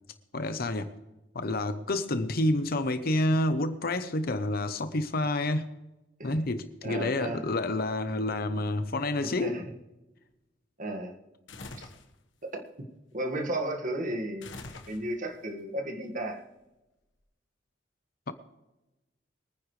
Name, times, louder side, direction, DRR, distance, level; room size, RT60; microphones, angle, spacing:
voice 1, 0.3-0.9 1.3-5.7 6.2-9.6 18.3-18.4, left 2 dB, 55° left, 0.8 m, -29 dB
voice 2, 6.8-7.4 9.2-9.6 10.8-11.1 11.8-11.9 12.4-12.6 13.1-14.6 14.9-16.4, right 1 dB, 45° right, 1.8 m, -34 dB
sound 1, 11.5-12.1 14.4-15.4, left 2 dB, 90° left, 1.4 m, -44 dB
23.5 x 9.9 x 3.2 m
head